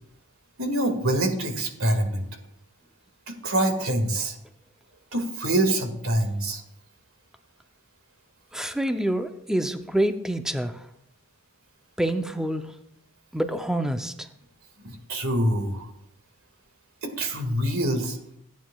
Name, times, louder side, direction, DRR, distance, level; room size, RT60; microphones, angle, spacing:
voice 1, 0.6-2.3 3.3-4.3 5.1-6.6 14.8-15.9 17.0-18.2, right 1 dB, 85° right, 5 dB, 1.9 m, -25 dB
voice 2, 8.5-10.8 12.0-12.7 13.3-14.3, right 1 dB, 5° right, 7 dB, 0.5 m, -27 dB
16.5 x 9.3 x 2.3 m, 0.77 s
head